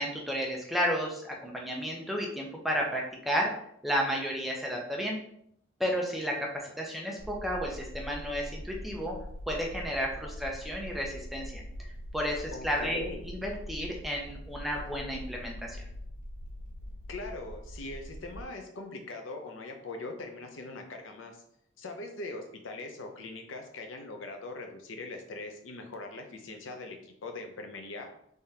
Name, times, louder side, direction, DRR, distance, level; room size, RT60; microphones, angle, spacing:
voice 1, 0.0-3.5 3.8-5.2 5.8-9.2 9.5-15.8, equal, ahead, -1 dB, 0.6 m, -32 dB
sound 1, 7.2-18.4, equal, 45° right, 1.1 m, -43 dB
voice 2, 12.5-13.3 17.1-21.4 21.8-28.1, left 2 dB, 85° left, 4 dB, 0.6 m, -41 dB
3.4 x 3.4 x 2.8 m, 0.70 s
head